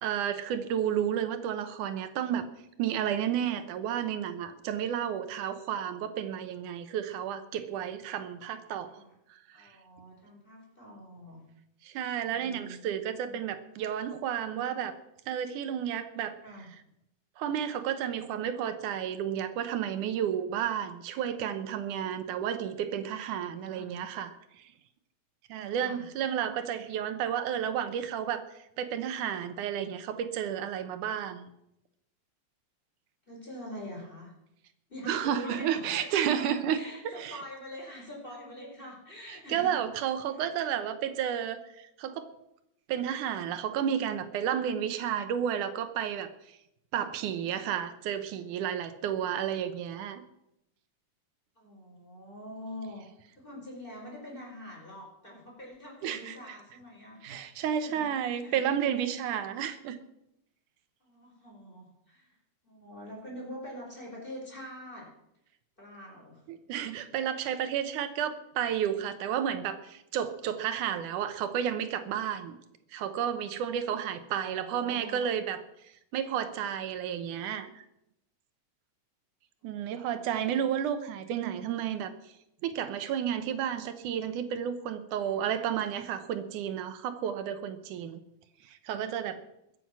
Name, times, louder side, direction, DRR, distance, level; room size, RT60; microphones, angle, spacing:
voice 1, 0.0-2.5 2.8-9.0 9.6-9.7 11.8-15.0 15.3-16.4 17.4-24.4 25.5-28.4 28.8-31.5 35.1-36.8 37.2-37.4 39.3-42.3 42.9-46.6 46.9-50.2 56.0-56.6 57.2-60.0 66.5-72.6 72.9-75.6 76.1-77.8 79.6-82.1 82.6-88.2 88.7-89.4, right 9 dB, 85° right, 10 dB, 2.5 m, -32 dB
voice 2, 8.8-9.1 9.5-11.4 12.3-12.9 13.2-13.4 16.4-16.7 23.7-23.9 25.6-26.0 33.3-34.3 34.9-39.8 40.3-40.4 51.5-53.0 53.3-58.7 61.0-62.3 62.6-65.1 65.8-66.4 74.3-75.3 79.8-80.5, left 1 dB, 15° left, -2 dB, 4.9 m, -45 dB
22.0 x 7.7 x 6.1 m, 0.82 s
omnidirectional pair, 3.5 m